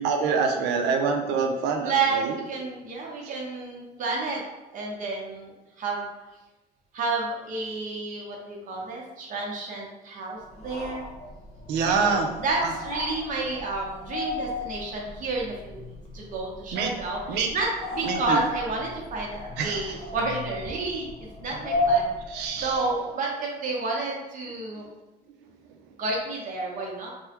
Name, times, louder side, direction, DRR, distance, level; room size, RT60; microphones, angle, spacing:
voice 1, 0.0-2.2 11.7-12.3 16.7-16.9 17.3-17.5 18.0-18.4 19.6-19.8 22.3-22.7, right 5 dB, 90° right, 3 dB, 0.5 m, -25 dB
voice 2, 1.8-4.4 4.7-6.1 6.9-11.1 11.9-15.8 16.1-21.1 21.4-22.1 22.6-24.9 26.0-27.1, right 3 dB, 50° right, -1 dB, 0.8 m, -30 dB
sound 1, 10.5-23.1, left 1 dB, 40° left, 0.6 m, -34 dB
3.4 x 2.1 x 2.9 m, 1.0 s
cardioid pair, 110°, 17 cm